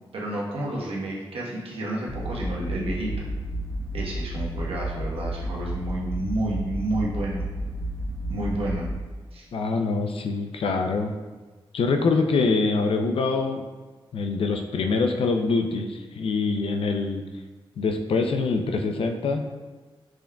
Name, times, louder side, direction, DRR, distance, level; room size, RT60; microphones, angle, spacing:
voice 1, 0.1-3.2 3.9-7.4 8.3-8.9 9.3-9.5, right 1 dB, 80° right, -3 dB, 1.1 m, -30 dB
sound 1, 2.1-8.9, right 1 dB, ahead, 0.9 m, -31 dB
voice 2, 9.5-11.1 11.7-13.7 14.1-17.2 17.8-19.4, left 4 dB, 75° left, 5 dB, 0.5 m, -24 dB
6.1 x 3.6 x 2.3 m, 1.3 s
cardioid pair, 60°, 10 cm